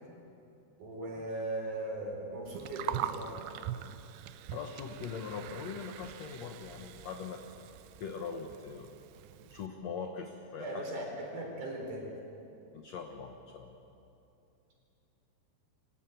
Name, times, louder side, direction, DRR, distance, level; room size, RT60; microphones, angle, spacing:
voice 1, 0.8-3.4 10.6-12.1, right 1 dB, 50° right, 0 dB, 5.3 m, -38 dB
Gurgling, 2.5-9.7, right 12 dB, 80° right, 2.5 m, -42 dB
voice 2, 4.5-7.7 8.0-8.9 9.5-10.8 12.7-13.7, left 5 dB, 80° left, 4 dB, 1.5 m, -41 dB
25.0 x 15.0 x 9.2 m, 2.8 s
omnidirectional pair, 4.8 m